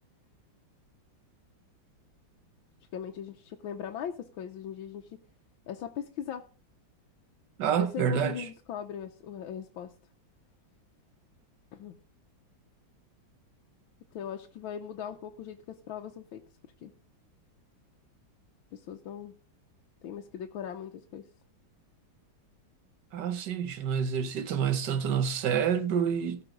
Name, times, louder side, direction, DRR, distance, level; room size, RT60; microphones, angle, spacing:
voice 1, 2.9-5.2 5.7-6.5 7.7-9.9 11.7-12.0 14.1-16.4 16.8-16.9 18.7-19.4 20.0-21.3, left 8 dB, 90° left, 1.6 m, -39 dB
voice 2, 7.6-8.5 23.1-26.4, right 7 dB, 65° right, 1.4 m, -28 dB
17.0 x 5.9 x 5.0 m
omnidirectional pair, 2.2 m